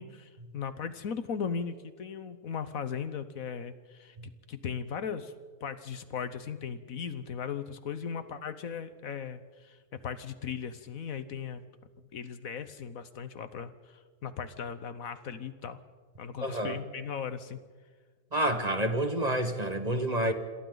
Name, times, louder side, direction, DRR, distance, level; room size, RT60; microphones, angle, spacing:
voice 1, 0.0-5.3 5.6-11.6 12.1-13.7 14.2-15.8 16.2-17.6, left 6 dB, 70° left, 12 dB, 1.4 m, -37 dB
voice 2, 16.4-16.8 18.3-20.3, right 1 dB, 30° right, 7 dB, 1.4 m, -28 dB
27.5 x 26.5 x 4.0 m, 1.5 s
omnidirectional pair, 1.6 m